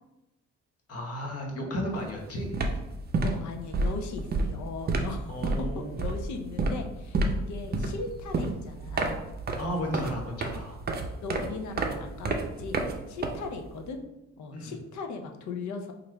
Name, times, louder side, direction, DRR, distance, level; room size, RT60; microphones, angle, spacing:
voice 1, 0.9-2.6 5.3-6.0 9.6-10.8 14.5-14.7, equal, 50° left, 0 dB, 1.1 m, -34 dB
sound 1, 1.9-2.1 2.4-13.8, right 2 dB, 35° right, 0.5 m, -30 dB
voice 2, 3.2-9.3 11.2-12.8 13.1-14.0 14.4-15.9, left 4 dB, 70° left, 6 dB, 0.6 m, -38 dB
3.1 x 2.5 x 4.4 m, 0.94 s
cardioid pair, 90°, 30 cm